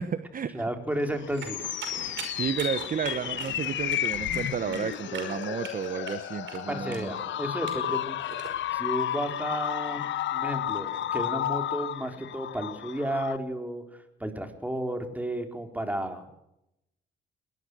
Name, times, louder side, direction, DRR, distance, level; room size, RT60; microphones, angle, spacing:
voice 1, 0.0-0.6 1.9-7.1, right 7 dB, 45° right, 12 dB, 1.1 m, -32 dB
voice 2, 0.5-1.6 6.7-8.2 8.7-10.0 10.3-16.3, right 1 dB, 10° right, 5 dB, 4.1 m, -32 dB
sound 1, 1.0-13.4, left 12 dB, 70° left, 1.0 m, -32 dB
sound 2, 1.4-8.5, right 6 dB, 70° right, 5.4 m, -42 dB
21.5 x 20.0 x 6.3 m, 0.84 s
cardioid pair, 90°, 20 cm